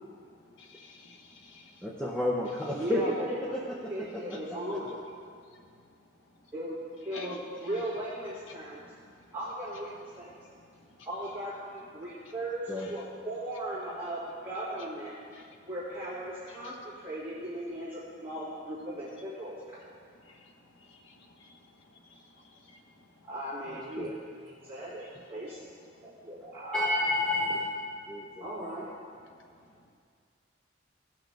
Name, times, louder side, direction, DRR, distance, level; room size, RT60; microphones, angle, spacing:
voice 1, 0.2-1.9 4.3-4.4 5.3-6.0 6.4-6.5 7.1-7.4 8.5-9.4 10.1-11.1 12.2-12.3 12.8-12.9 15.3-15.7 16.5-16.8 19.9-23.3 25.0-25.1 25.5-25.6 25.9-26.2 28.1-28.4 29.3-29.9, left 2 dB, 85° left, 1 dB, 1.2 m, -54 dB
voice 2, 1.8-3.1 3.5-4.2 4.8-5.0 12.7-12.9 23.7-24.1 26.7-27.7 28.1-28.4, left 1 dB, 5° left, -3 dB, 0.6 m, -31 dB
voice 3, 2.7-3.6 3.9-4.9 6.5-8.8 9.3-10.3 11.1-15.2 15.7-19.6 23.2-25.6 26.0-26.9 28.4-28.9, right 1 dB, 10° right, -12 dB, 2.0 m, -37 dB
17.0 x 5.9 x 3.5 m, 2.2 s
head